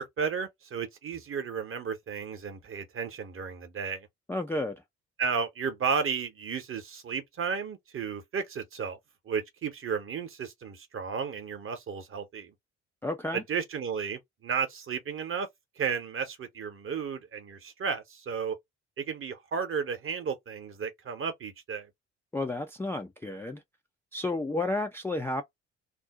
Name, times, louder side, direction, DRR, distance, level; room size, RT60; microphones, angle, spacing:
voice 1, 0.0-4.1 5.2-9.0 9.2-12.5 13.3-15.5 15.8-18.6 19.0-21.9, right 6 dB, 35° right, 0.9 m, -33 dB
voice 2, 4.3-4.8 13.0-13.4 22.3-23.6 24.1-25.4, left 2 dB, 5° left, 0.4 m, -31 dB
2.5 x 2.1 x 3.6 m
figure-of-eight pair, 45°, 36 cm